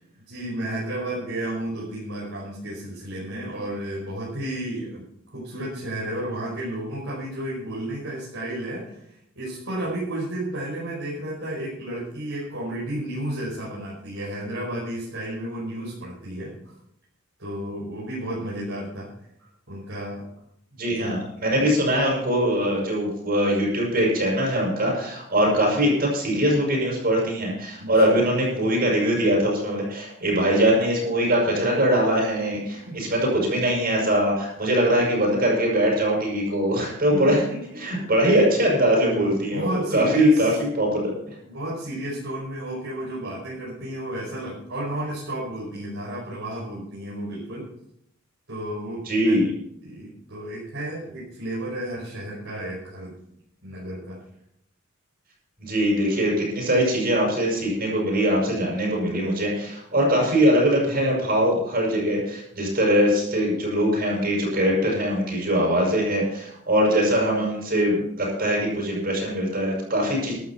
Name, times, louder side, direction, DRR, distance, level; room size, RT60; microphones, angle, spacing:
voice 1, 0.3-5.0 5.3-16.7 17.4-19.1 19.4-20.2 20.9-21.3 21.5-21.7 27.8-27.9 32.9-33.0 37.1-37.6 37.9-38.0 39.0-40.5 41.4-47.7 48.5-49.4 49.8-53.1 53.6-54.2, right 1 dB, 60° right, -6 dB, 5.2 m, -32 dB
voice 2, 20.8-37.4 37.8-41.3 49.1-49.5 55.6-70.3, equal, 45° right, -3 dB, 6.5 m, -22 dB
14.0 x 12.5 x 4.4 m, 0.75 s
head